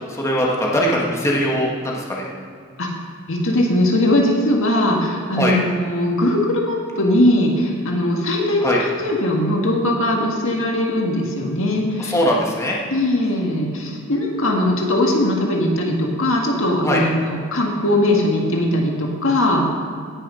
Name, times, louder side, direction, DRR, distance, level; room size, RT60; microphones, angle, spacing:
voice 1, 0.1-2.3 5.3-5.6 8.6-8.8 12.0-12.7 16.8-17.0, equal, 15° left, -3 dB, 1.6 m, -20 dB
voice 2, 3.3-12.1 12.9-19.6, left 1 dB, 60° left, 0 dB, 1.8 m, -20 dB
17.5 x 6.4 x 5.5 m, 2.2 s
head